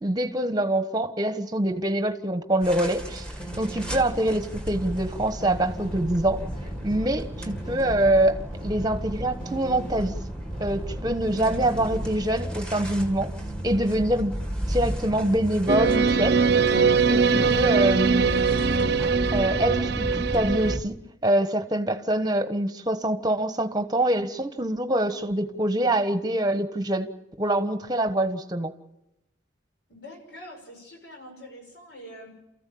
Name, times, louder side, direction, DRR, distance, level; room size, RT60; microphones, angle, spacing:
voice 1, 0.0-3.3 3.6-6.4 6.8-10.1 10.6-13.3 13.6-14.3 14.7-16.4 17.1-18.3 19.3-21.0 21.2-27.1 27.4-28.7, right 1 dB, 20° right, 9 dB, 1.3 m, -25 dB
sound 1, 2.6-20.8, right 1 dB, 5° left, 2.0 m, -34 dB
sound 2, 3.4-12.2, equal, 45° left, 5.9 m, -37 dB
sound 3, 15.7-20.8, right 5 dB, 60° right, 0.8 m, -22 dB
voice 2, 29.9-32.4, equal, 65° left, 3 dB, 6.1 m, -44 dB
29.0 x 14.5 x 8.6 m, 0.89 s
head